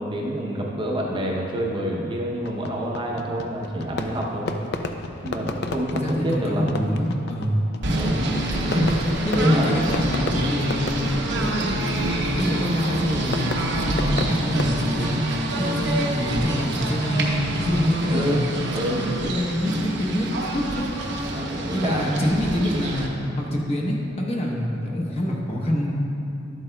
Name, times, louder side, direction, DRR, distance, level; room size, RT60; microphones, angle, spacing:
voice 1, 0.0-4.5 5.2-6.7 7.9-8.3 8.6-9.0 9.3-9.8 18.1-19.1 21.3-22.1, equal, 25° right, -2 dB, 0.7 m, -27 dB
Fireworks, 2.4-14.7, left 3 dB, 55° left, 0.4 m, -33 dB
voice 2, 5.9-8.2 8.7-9.0 9.2-13.5 13.9-15.3 15.6-18.5 18.8-18.9 19.2-20.9 21.5-23.1 23.4-26.0, equal, 35° left, -1 dB, 0.9 m, -25 dB
Singing / Bird, 7.8-23.1, right 1 dB, 60° right, 0.8 m, -27 dB
11.0 x 7.9 x 2.3 m, 2.8 s
head